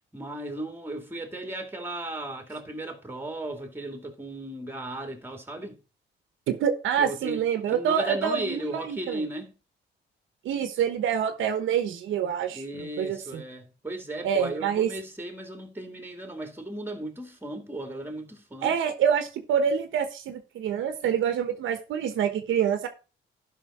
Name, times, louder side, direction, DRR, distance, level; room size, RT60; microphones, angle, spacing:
voice 1, 0.1-5.8 7.0-7.4 7.7-9.5 12.5-18.7, right 1 dB, 10° right, 2.3 m, -36 dB
voice 2, 6.5-9.2 10.4-13.4 14.2-14.9 18.6-22.9, right 8 dB, 80° right, 1.2 m, -26 dB
11.5 x 5.6 x 4.2 m
cardioid pair, 90°, 20 cm